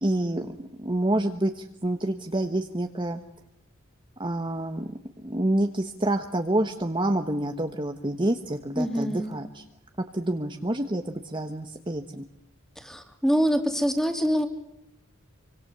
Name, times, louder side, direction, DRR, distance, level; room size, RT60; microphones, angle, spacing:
voice 1, 0.0-3.2 4.2-9.6 10.1-12.2, right 1 dB, 20° right, 6 dB, 1.3 m, -28 dB
voice 2, 8.8-9.4 12.8-14.5, equal, ahead, 6 dB, 3.1 m, -25 dB
27.0 x 25.0 x 6.9 m, 0.84 s
head